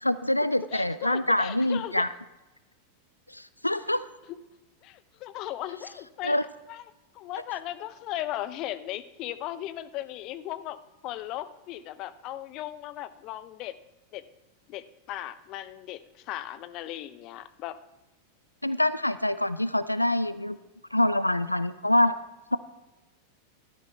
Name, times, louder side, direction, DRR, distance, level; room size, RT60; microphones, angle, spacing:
voice 1, 0.0-2.1 3.3-4.0 6.2-6.4 18.6-20.6 20.9-22.2, left 1 dB, 85° left, 15 dB, 0.4 m, -25 dB
voice 2, 0.7-2.0 4.8-6.4 6.7-6.8 7.1-13.7 14.1-14.2 14.7-17.8, left 13 dB, 40° left, 15 dB, 0.7 m, -37 dB
14.5 x 13.0 x 4.5 m, 1.1 s
figure-of-eight pair, 90°, 0 cm